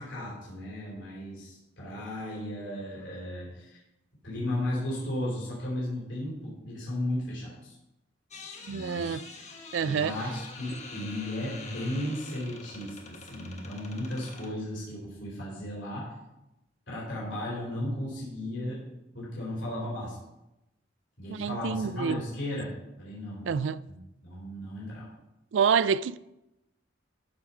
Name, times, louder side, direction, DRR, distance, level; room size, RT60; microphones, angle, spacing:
voice 1, 0.0-3.8 4.2-7.8 8.7-9.1 9.8-16.1 16.9-18.8 19.1-20.2 21.2-23.5 23.9-24.0 24.2-25.1, left 1 dB, 70° left, 3.5 m, -35 dB
sound 1, 8.3-14.5, left 3 dB, 35° left, 1.2 m, -46 dB
voice 2, 8.6-9.2 9.7-10.1 21.3-22.2 23.4-23.8 25.5-26.2, right 6 dB, 75° right, 0.4 m, -27 dB
12.5 x 4.8 x 5.5 m
head